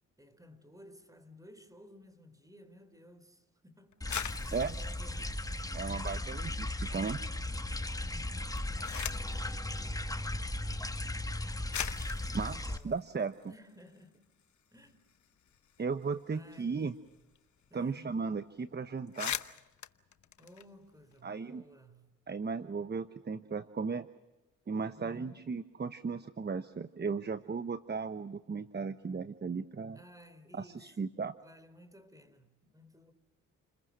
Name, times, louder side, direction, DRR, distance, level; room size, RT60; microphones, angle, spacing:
voice 1, 0.2-5.4 8.0-8.7 12.0-13.0 13.5-14.3 14.7-15.1 16.3-16.8 17.7-18.2 20.4-22.1 24.9-25.6 29.9-33.1, left 1 dB, 10° right, 3.9 m, -56 dB
sound 1, 3.9-6.5 6.9-7.5 8.3-9.4 10.5-10.6 11.3-11.4 11.7-14.0 14.4-14.5 14.7-17.4 17.6-17.7 18.0-18.3 18.6-18.7 19.0-21.2, left 9 dB, 55° left, 1.1 m, -43 dB
sound 2, 4.0-12.8, left 1 dB, 10° left, 1.2 m, -36 dB
voice 2, 5.7-7.2 12.3-13.3 15.8-16.9 17.7-19.4 21.2-21.6 22.3-24.1 24.7-30.0 30.5-31.3, right 5 dB, 30° right, 1.0 m, -36 dB
30.0 x 21.0 x 6.4 m
cardioid pair, 65°, 34 cm